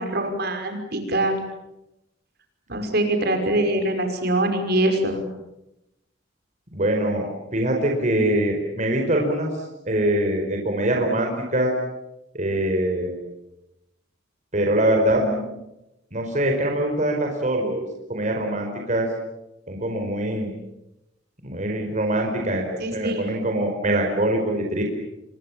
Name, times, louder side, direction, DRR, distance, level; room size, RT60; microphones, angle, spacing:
voice 1, 0.0-1.4 2.7-5.2 15.1-15.4 22.8-23.2, right 1 dB, 55° right, 5 dB, 5.6 m, -24 dB
voice 2, 6.7-11.7 12.3-13.2 14.5-15.2 16.1-19.1 19.7-20.5 21.4-24.8, right 1 dB, 40° right, 2 dB, 4.9 m, -23 dB
28.5 x 25.0 x 7.4 m, 0.89 s
head